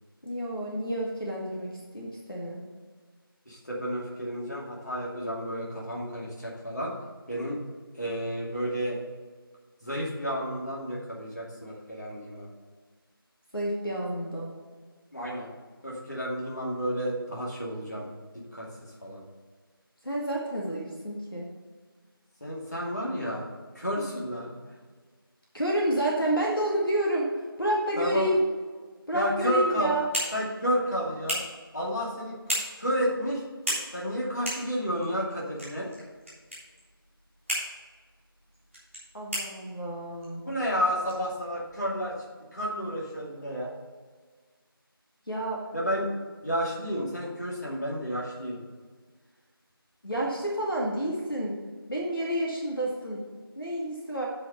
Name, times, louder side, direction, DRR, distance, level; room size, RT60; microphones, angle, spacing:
voice 1, 0.2-2.6 13.5-14.5 20.0-21.5 25.5-27.3 27.6-28.4 29.1-30.1 39.1-40.4 45.3-45.6 50.0-51.6 51.9-53.2 53.6-54.3, right 1 dB, 65° left, -2 dB, 2.1 m, -29 dB
voice 2, 3.5-6.9 7.3-7.6 7.9-9.0 9.8-12.5 15.1-15.5 15.8-18.1 18.5-18.7 19.0-19.2 22.4-23.4 23.7-24.5 28.0-28.3 29.1-29.9 30.3-31.4 31.7-32.4 32.8-33.4 33.9-35.9 40.4-42.2 42.5-43.7 45.7-46.1 46.4-48.6, equal, 45° left, -5 dB, 2.5 m, -31 dB
sound 1, 29.6-42.0, equal, ahead, 2.0 m, -38 dB
8.7 x 5.1 x 6.8 m, 1.5 s
figure-of-eight pair, 175°, 13 cm